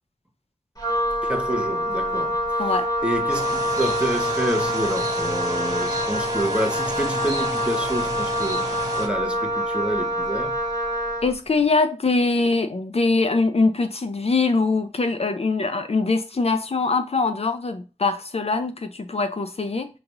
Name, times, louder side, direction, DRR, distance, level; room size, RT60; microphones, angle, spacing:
Wind instrument woodwind instrument, 0.8-11.3, equal, 30° left, 1.6 m, -26 dB
voice 1, 1.2-2.8 3.0-10.6, right 1 dB, 10° right, 0.9 m, -28 dB
sound 1, 3.3-9.1, right 1 dB, 30° right, 1.4 m, -33 dB
voice 2, 11.2-19.9, left 3 dB, 55° left, 0.5 m, -23 dB
6.7 x 3.0 x 2.5 m
wide cardioid pair, 70°, 12 cm